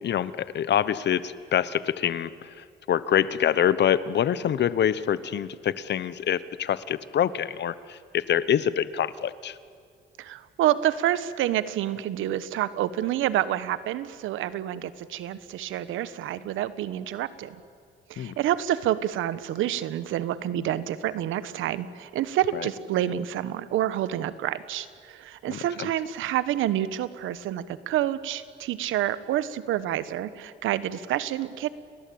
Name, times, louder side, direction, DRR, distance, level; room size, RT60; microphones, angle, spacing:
voice 1, 0.0-9.6 18.2-18.3 22.5-22.7 25.5-25.9, left 9 dB, 60° left, 16 dB, 1.1 m, -26 dB
voice 2, 10.2-17.6 18.1-31.7, right 12 dB, 90° right, 15 dB, 1.2 m, -28 dB
29.5 x 20.0 x 8.7 m, 2.1 s
cardioid pair, 90°, 20 cm